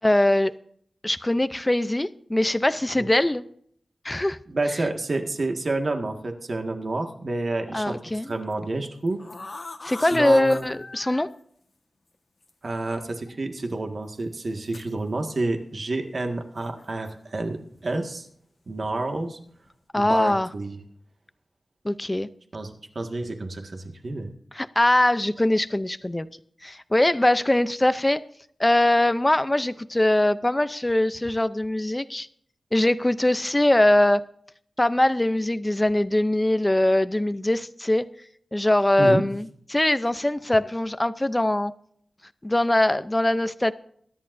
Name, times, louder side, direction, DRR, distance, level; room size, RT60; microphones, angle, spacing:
voice 1, 0.0-0.5 1.0-3.4 4.0-4.4 7.7-8.3 9.8-11.3 19.9-20.5 21.8-22.3 24.5-26.3 26.6-28.2 28.6-32.3 32.7-34.2 34.8-38.1 38.5-41.7 42.4-43.7, left 1 dB, 15° left, 13 dB, 0.6 m, -22 dB
voice 2, 4.5-7.9 8.2-9.2 9.5-9.6 10.0-10.7 12.6-17.6 17.8-18.3 18.7-19.4 19.9-20.8 22.5-24.3 39.0-39.2, right 2 dB, 55° right, 4 dB, 1.8 m, -29 dB
sound 1, 8.3-8.5 9.1-11.2 12.4-12.5 13.3-13.4 14.3-14.9 16.8-17.5 17.8-18.1 18.7-18.9 19.3-19.7, left 3 dB, 45° left, 1.4 m, -41 dB
21.5 x 11.0 x 2.6 m, 0.64 s
wide cardioid pair, 100°, 0 cm